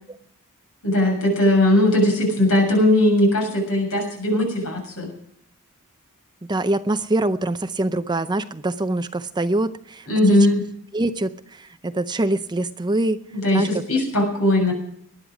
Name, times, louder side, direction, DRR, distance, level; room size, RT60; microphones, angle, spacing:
voice 1, 0.8-5.1 10.1-10.6 13.3-14.7, left 1 dB, 75° left, 1 dB, 7.1 m, -19 dB
voice 2, 6.5-10.5 10.9-13.2 13.5-13.8, right 2 dB, 20° right, 11 dB, 0.6 m, -24 dB
19.0 x 11.0 x 5.1 m, 0.66 s
head